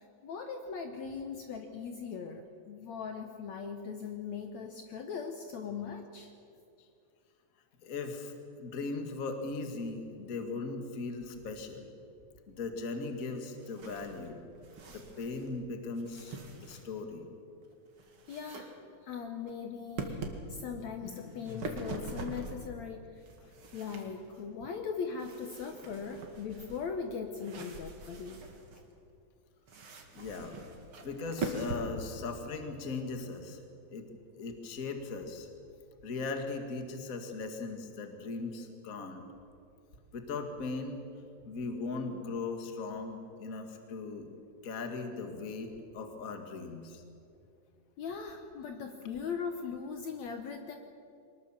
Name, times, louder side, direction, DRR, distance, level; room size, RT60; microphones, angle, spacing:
voice 1, 0.0-6.3 18.3-18.8 19.1-20.2 20.5-28.6 48.0-50.8, left 6 dB, 65° left, 5 dB, 2.1 m, -40 dB
voice 2, 7.8-11.9 12.5-14.4 14.9-17.3 30.1-30.6 31.0-33.6 33.9-35.5 36.0-39.2 40.1-41.0 41.4-44.3 44.6-47.0, left 3 dB, 30° left, 5 dB, 1.7 m, -38 dB
sound 1, 13.4-15.6 15.9-17.1 17.6-18.6 19.0-19.5 20.0-20.4 21.2-22.7 23.2-24.4 25.1-28.8 29.7-31.8, right 3 dB, 45° right, 2.6 m, -43 dB
24.0 x 20.0 x 7.4 m, 2.5 s
omnidirectional pair, 4.0 m